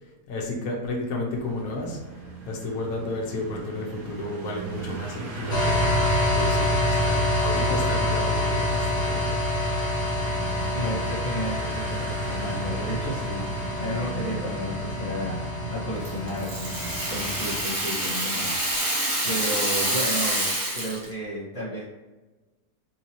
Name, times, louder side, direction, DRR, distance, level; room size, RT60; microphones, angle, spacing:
voice 1, 0.3-2.0 2.5-5.9 6.3-9.4, left 2 dB, 65° left, -1 dB, 1.1 m, -32 dB
sound 1, 1.3-17.8, right 4 dB, 80° right, 1.4 m, -37 dB
sound 2, 5.5-17.6, left 2 dB, 40° left, 0.6 m, -27 dB
voice 2, 10.7-18.6 19.2-21.8, equal, 25° left, -9 dB, 0.9 m, -33 dB
Rattle (instrument), 16.0-21.1, right 1 dB, 35° right, 0.3 m, -27 dB
3.8 x 2.7 x 2.9 m, 1.2 s
omnidirectional pair, 1.7 m